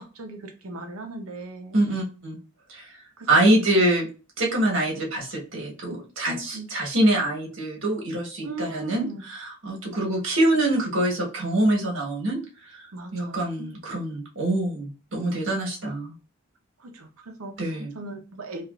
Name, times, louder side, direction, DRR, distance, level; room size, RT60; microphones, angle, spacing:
voice 1, 0.0-1.8 3.2-3.3 6.3-6.7 8.4-9.2 12.9-13.5 16.8-17.6 18.0-18.7, right 2 dB, 85° right, 0.6 m, -38 dB
voice 2, 1.7-2.4 2.7-3.0 3.3-4.1 4.4-12.8 13.1-16.1 17.6-17.9, right 1 dB, 65° right, 1.3 m, -25 dB
3.3 x 2.4 x 2.3 m
head